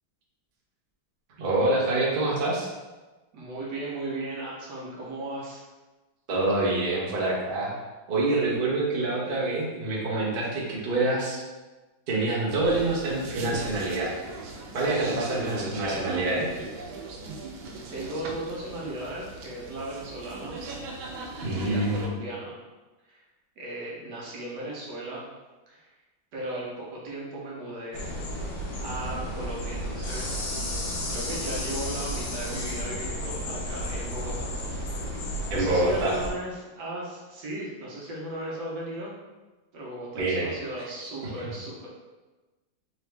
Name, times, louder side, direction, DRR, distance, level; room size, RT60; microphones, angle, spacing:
voice 1, 1.4-2.7 6.3-7.7 8.1-11.4 12.1-14.1 14.7-16.5 21.4-22.1 35.5-36.2 40.1-40.6, right 2 dB, 50° right, -5 dB, 0.6 m, -26 dB
voice 2, 3.3-5.6 17.9-20.6 21.4-22.6 23.1-23.2 23.6-25.2 25.7-25.9 26.3-28.1 28.8-30.6 31.1-34.5 34.9-39.2 39.7-41.9, right 1 dB, 65° right, -4 dB, 1.4 m, -36 dB
sound 1, 12.6-22.1, right 3 dB, 90° right, 1.4 m, -36 dB
sound 2, 27.9-36.3, equal, 80° left, 1.6 m, -32 dB
4.0 x 2.9 x 3.3 m, 1.2 s
omnidirectional pair, 2.1 m